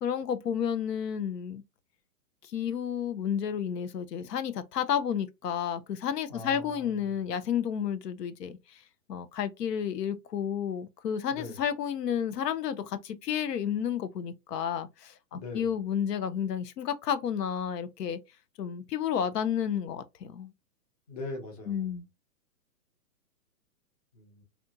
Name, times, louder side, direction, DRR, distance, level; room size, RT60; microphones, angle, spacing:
voice 1, 0.0-1.6 2.4-8.8 9.1-18.2 18.6-20.5 21.7-22.1, left 8 dB, 90° left, 0.7 m, -31 dB
voice 2, 6.3-7.2 11.3-11.6 15.3-15.7 21.1-22.0 24.1-24.4, left 2 dB, 25° left, 0.6 m, -41 dB
2.8 x 2.2 x 2.6 m
hypercardioid pair, 160°, 47 cm